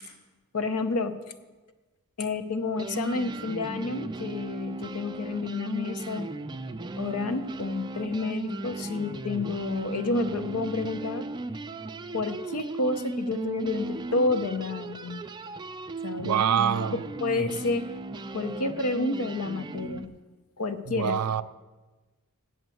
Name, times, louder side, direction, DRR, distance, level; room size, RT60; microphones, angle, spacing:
voice 1, 0.5-1.2 2.2-6.3 7.0-11.3 12.1-15.2 16.0-16.4 16.9-17.9 18.3-20.1 20.6-21.2, left 3 dB, 80° left, 0.8 m, -30 dB
sound 1, 2.4-2.5 2.7-20.1, right 2 dB, 20° right, 0.4 m, -36 dB
voice 2, 16.2-17.0 20.9-21.4, right 8 dB, 85° right, 0.4 m, -25 dB
8.0 x 7.8 x 7.7 m
head